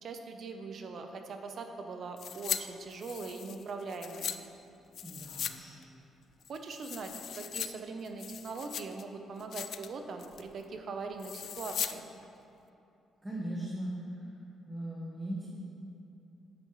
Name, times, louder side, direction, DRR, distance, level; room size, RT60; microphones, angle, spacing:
voice 1, 0.0-4.3 6.5-7.1 7.4-12.0, right 4 dB, 55° right, 5 dB, 0.8 m, -41 dB
sound 1, 2.2-2.6 2.9-4.4 4.9-5.6 5.8-5.9 6.4-7.7 8.1-9.0 9.4-9.9 10.2-10.5 11.2-11.9 12.2-12.3, left 9 dB, 65° left, 0.3 m, -38 dB
voice 2, 5.0-5.8 13.2-13.9 14.7-15.5, right 1 dB, 10° right, -5 dB, 1.4 m, -38 dB
9.7 x 8.1 x 3.1 m, 2.8 s
cardioid pair, 90°, 0 cm